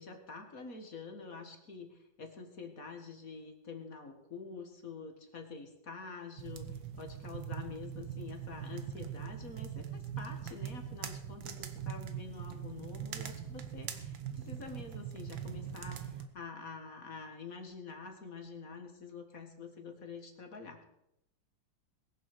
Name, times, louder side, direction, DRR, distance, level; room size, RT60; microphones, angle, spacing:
voice 1, 0.0-20.8, left 4 dB, 45° left, 5 dB, 2.0 m, -47 dB
sound 1, 6.4-16.3, right 8 dB, 75° right, 1.9 m, -42 dB
21.0 x 7.2 x 6.7 m, 0.81 s
omnidirectional pair, 2.1 m